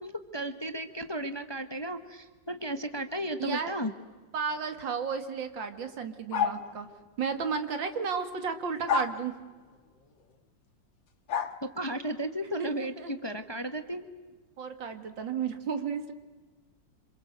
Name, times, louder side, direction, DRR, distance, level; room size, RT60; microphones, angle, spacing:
voice 1, 0.0-3.9 11.6-14.0, right 1 dB, 15° left, 9 dB, 1.1 m, -34 dB
voice 2, 3.4-3.7 4.3-6.9 7.2-9.4 12.6-13.1 14.6-16.1, right 6 dB, 80° right, 8 dB, 2.6 m, -33 dB
sound 1, 6.3-6.7 8.9-9.2 11.3-11.6, left 7 dB, 90° left, 2.3 m, -28 dB
27.0 x 26.5 x 8.1 m, 1.3 s
omnidirectional pair, 2.0 m